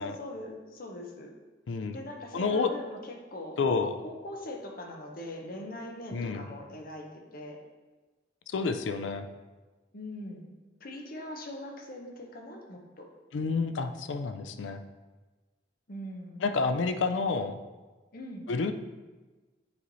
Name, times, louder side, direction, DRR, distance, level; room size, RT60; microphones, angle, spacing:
voice 1, 0.0-1.3 1.9-3.6 4.0-7.1 7.3-7.6 9.9-13.1 15.9-16.4 18.1-18.5, left 1 dB, 50° left, 2 dB, 0.9 m, -41 dB
voice 2, 2.3-2.7 3.6-4.0 6.1-6.4 8.5-9.3 13.3-14.8 16.4-17.6 18.5-18.7, left 4 dB, 80° left, 8 dB, 0.4 m, -29 dB
8.5 x 3.1 x 4.0 m, 1.3 s
head